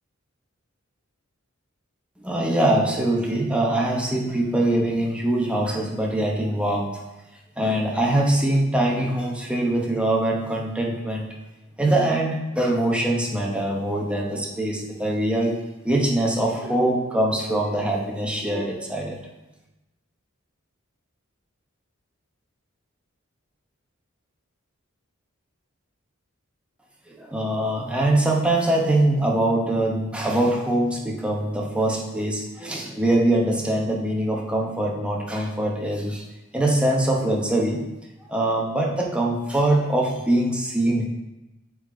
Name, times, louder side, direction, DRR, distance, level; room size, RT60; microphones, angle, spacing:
voice 1, 2.2-7.0 7.6-11.3 11.8-15.6 15.8-19.2 27.1-36.2 36.5-37.8 38.3-41.1, right 1 dB, 5° right, -1 dB, 0.8 m, -23 dB
8.5 x 3.9 x 3.7 m, 1.0 s
head